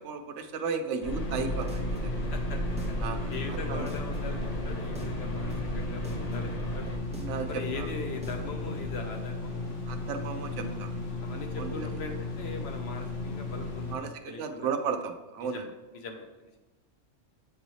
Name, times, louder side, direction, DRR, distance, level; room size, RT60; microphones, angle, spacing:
voice 1, 0.0-2.2 3.0-3.3 3.7-3.9 7.2-7.9 9.9-10.9 11.6-11.9 13.9-15.6, right 5 dB, 80° right, 8 dB, 0.9 m, -34 dB
sound 1, 1.0-7.0, right 1 dB, 40° left, 0.7 m, -35 dB
sound 2, 1.1-14.0, left 3 dB, 85° left, 1.3 m, -35 dB
sound 3, 1.2-9.0, right 1 dB, 10° right, 0.5 m, -46 dB
voice 2, 3.3-4.4 4.6-6.9 7.4-9.7 10.5-10.9 11.2-14.7 15.4-16.3, left 4 dB, 65° left, 3 dB, 1.0 m, -41 dB
7.6 x 4.1 x 3.1 m, 1.1 s
omnidirectional pair, 1.2 m